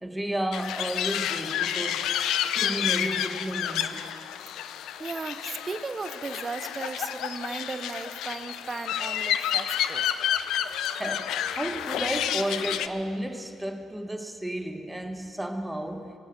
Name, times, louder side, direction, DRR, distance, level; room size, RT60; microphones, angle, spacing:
voice 1, 0.0-2.1 2.6-4.2 11.0-16.1, right 1 dB, 5° right, 1.2 m, -32 dB
sound 1, 0.5-12.9, left 10 dB, 85° left, 0.5 m, -30 dB
voice 2, 5.0-10.1, right 4 dB, 30° right, 0.7 m, -36 dB
24.0 x 8.8 x 6.0 m
cardioid pair, 90°, 0 cm